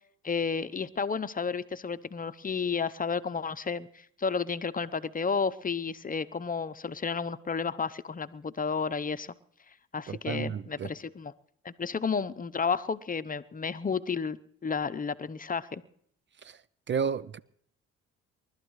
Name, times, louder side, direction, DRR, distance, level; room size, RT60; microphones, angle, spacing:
voice 1, 0.2-9.3 9.9-11.3 11.6-15.8, left 5 dB, 30° left, 0.8 m, -32 dB
voice 2, 10.1-10.9 16.4-16.6 16.9-17.4, right 6 dB, 40° right, 0.6 m, -32 dB
29.0 x 12.5 x 3.2 m
supercardioid pair, 70°, 30 cm